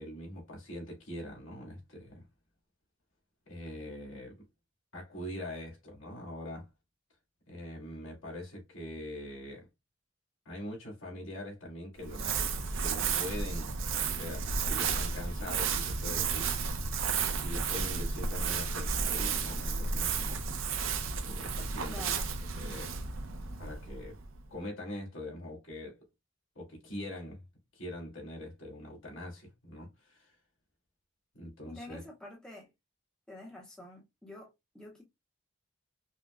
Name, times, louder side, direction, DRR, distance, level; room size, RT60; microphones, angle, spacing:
voice 1, 0.0-2.2 3.5-4.4 4.9-6.7 7.5-9.7 10.5-12.4 12.8-16.8 17.4-20.5 21.2-22.0 22.6-22.9 23.6-24.2 24.5-26.0 26.6-27.4 27.7-30.3 31.3-32.0, left 1 dB, 75° left, 2.2 m, -43 dB
Crumpling crinkling, 12.0-24.5, right 5 dB, 75° right, 0.6 m, -33 dB
voice 2, 21.9-22.3 31.6-32.7 33.3-35.0, left 1 dB, 5° left, 0.7 m, -47 dB
5.4 x 2.2 x 2.4 m
head